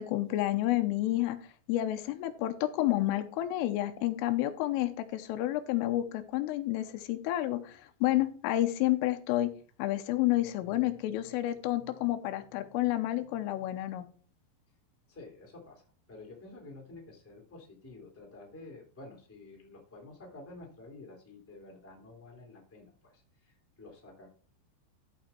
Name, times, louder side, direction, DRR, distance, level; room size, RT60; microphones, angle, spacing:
voice 1, 0.0-1.4 1.7-9.5 9.8-14.1, left 15 dB, 85° left, 9 dB, 3.5 m, -30 dB
voice 2, 15.1-24.3, left 2 dB, 5° left, 0 dB, 1.6 m, -50 dB
13.5 x 5.6 x 4.4 m, 0.41 s
omnidirectional pair, 5.6 m